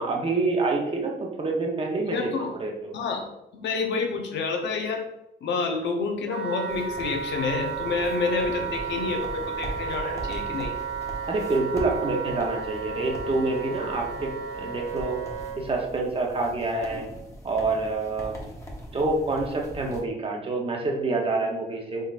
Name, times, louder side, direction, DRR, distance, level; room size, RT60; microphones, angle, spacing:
voice 1, 0.0-3.0 11.3-15.2 15.6-17.0 17.4-18.4 18.9-22.0, right 3 dB, 30° right, 0 dB, 0.8 m, -27 dB
voice 2, 2.1-2.6 2.9-3.3 3.6-5.1 5.4-10.8, left 4 dB, 80° left, 3 dB, 0.7 m, -28 dB
Wind instrument woodwind instrument, 6.3-15.6, right 7 dB, 80° right, 0.7 m, -33 dB
sound 1, 6.7-20.0, equal, 15° left, 0.9 m, -41 dB
3.9 x 3.8 x 2.5 m, 0.85 s
cardioid pair, 105°, 18 cm